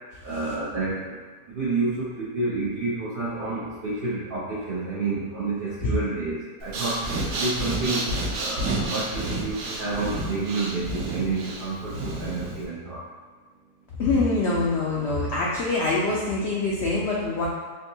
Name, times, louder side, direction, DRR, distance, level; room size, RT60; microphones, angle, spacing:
voice 1, 0.2-1.2 1.5-7.0 7.3-13.0, right 3 dB, 90° right, -8 dB, 0.4 m, -29 dB
Breathing, 6.6-12.7, right 2 dB, 75° right, 1.0 m, -30 dB
voice 2, 14.0-17.5, left 3 dB, 80° left, -5 dB, 0.5 m, -24 dB
3.6 x 2.6 x 2.7 m, 1.4 s
omnidirectional pair, 1.7 m